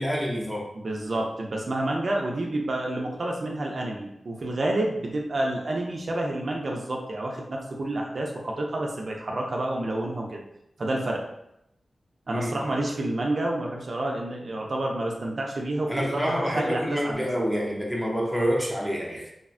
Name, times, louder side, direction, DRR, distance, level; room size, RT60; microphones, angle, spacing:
voice 1, 0.0-0.7 12.3-12.7 15.9-19.3, equal, 5° left, -2 dB, 0.6 m, -27 dB
voice 2, 0.8-10.4 10.8-11.2 12.3-17.2, right 1 dB, 55° right, 0 dB, 0.4 m, -29 dB
3.2 x 2.1 x 2.4 m, 0.82 s
wide cardioid pair, 90°, 0 cm